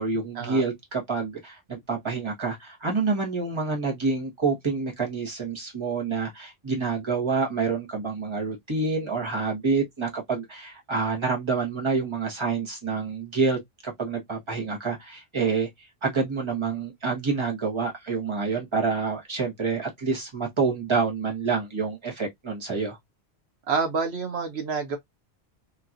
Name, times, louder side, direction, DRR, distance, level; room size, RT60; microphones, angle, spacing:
voice 1, 0.0-15.7 16.0-23.0, right 4 dB, 25° right, 1.3 m, -27 dB
voice 2, 23.7-25.0, right 5 dB, 75° right, 1.1 m, -28 dB
2.9 x 2.8 x 2.4 m
omnidirectional pair, 1.1 m